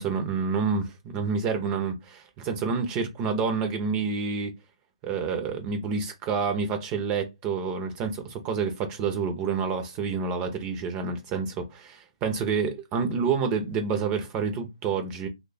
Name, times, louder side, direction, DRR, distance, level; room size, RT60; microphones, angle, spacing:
voice 1, 0.0-4.5 5.0-15.3, right 5 dB, 20° right, 0.7 m, -28 dB
3.0 x 2.3 x 4.0 m
hypercardioid pair, 150°, 3 cm